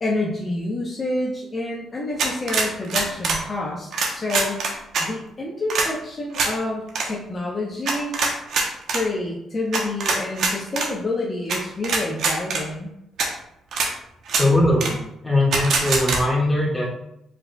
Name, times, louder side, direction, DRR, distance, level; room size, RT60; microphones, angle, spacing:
voice 1, 0.0-4.7 5.0-8.2 8.9-12.9, left 2 dB, 35° left, -3 dB, 0.8 m, -28 dB
sound 1, 2.2-3.4 3.9-5.1 5.7-5.9 6.3-6.5 6.9-7.1 7.9-9.0 9.7-10.9 11.5-11.6 11.8-12.6 13.2-13.3 13.7-13.9 14.3-14.5 14.8-14.9 15.5-16.2, right 4 dB, 70° right, 0.9 m, -23 dB
voice 2, 14.3-15.0 15.2-16.9, left 1 dB, 5° left, -5 dB, 1.7 m, -20 dB
4.7 x 4.1 x 2.3 m, 0.80 s
cardioid pair, 90°, 0 cm